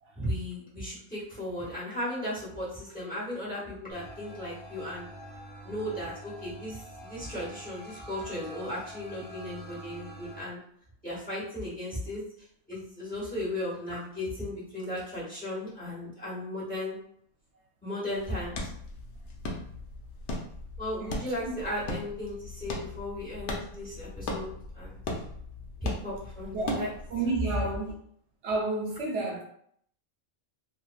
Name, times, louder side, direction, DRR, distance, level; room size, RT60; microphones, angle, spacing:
voice 1, 0.2-5.1 5.6-10.6 11.0-12.2 12.7-17.0 17.8-18.7 20.8-25.0 25.8-26.9, left 1 dB, 5° left, -8 dB, 1.2 m, -36 dB
sound 1, 3.9-10.4, equal, 45° left, 1.3 m, -46 dB
sound 2, 18.1-27.1, left 2 dB, 70° left, 0.9 m, -38 dB
voice 2, 26.5-27.9 28.4-29.4, right 3 dB, 70° right, 0 dB, 0.9 m, -31 dB
3.2 x 2.5 x 2.2 m, 0.66 s
omnidirectional pair, 1.3 m